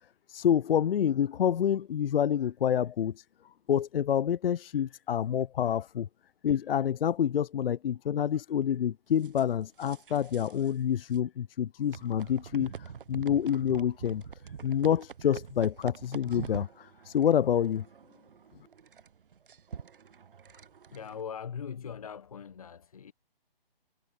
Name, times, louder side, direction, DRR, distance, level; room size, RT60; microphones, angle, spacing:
voice 1, 0.3-3.1 3.7-6.1 6.4-12.7 13.1-14.2 14.6-16.7 17.1-17.8, left 9 dB, 70° left, 0.5 m, -27 dB
sound 1, 9.2-10.7 11.0-11.2 11.9-21.2, right 7 dB, 65° right, 0.8 m, -45 dB
voice 2, 20.9-23.1, left 7 dB, 40° left, 0.8 m, -40 dB
hypercardioid pair, 170°, 30 cm